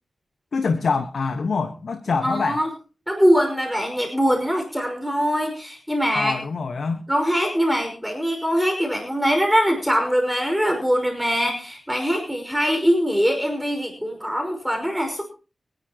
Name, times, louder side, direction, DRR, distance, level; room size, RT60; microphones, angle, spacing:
voice 1, 0.5-2.6 6.1-7.0, left 4 dB, 75° left, 8 dB, 1.5 m, -25 dB
voice 2, 2.2-2.7 3.1-6.4 7.1-15.2, equal, ahead, 2 dB, 5.7 m, -22 dB
24.5 x 11.0 x 3.0 m, 0.34 s
cardioid pair, 45°, 0 cm